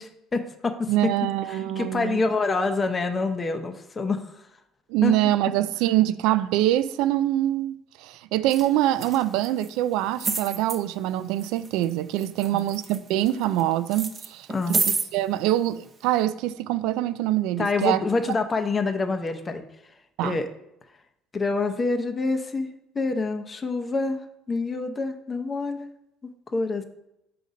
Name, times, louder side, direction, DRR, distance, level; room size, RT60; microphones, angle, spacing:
voice 1, 0.0-1.1 1.5-4.2 5.0-5.3 12.5-12.6 14.5-14.8 17.6-19.6 20.2-20.5 21.3-22.7 22.9-24.2 24.5-25.9 26.5-26.8, left 3 dB, 25° left, 0.6 m, -26 dB
voice 2, 0.9-2.2 4.9-14.8 15.1-18.0 20.2-20.4, right 14 dB, 80° right, 0.4 m, -24 dB
sound 1, 8.5-8.7 9.0-9.7 10.2-10.8 11.4-11.9 12.2-13.6 13.9-15.1 15.9-16.0, right 4 dB, 25° right, 0.7 m, -28 dB
6.7 x 4.0 x 5.1 m
cardioid pair, 135°, 0 cm